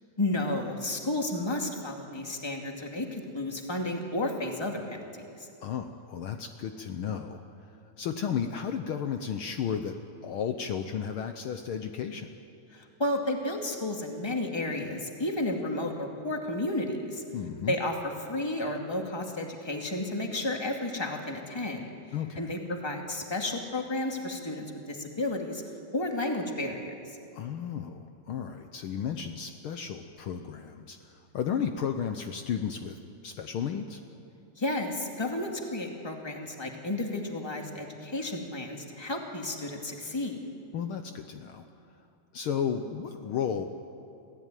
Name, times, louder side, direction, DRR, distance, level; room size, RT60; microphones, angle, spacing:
voice 1, 0.2-5.5 12.7-17.2 17.7-21.9 22.4-25.6 25.9-26.9 34.5-40.4, left 1 dB, 10° left, 2 dB, 1.8 m, -32 dB
voice 2, 5.6-7.4 8.0-12.3 17.3-17.7 22.1-22.5 27.3-33.0 33.2-34.0 40.7-41.7 42.3-43.6, left 7 dB, 85° left, 7 dB, 1.2 m, -33 dB
26.5 x 16.0 x 9.2 m, 2.5 s
omnidirectional pair, 3.5 m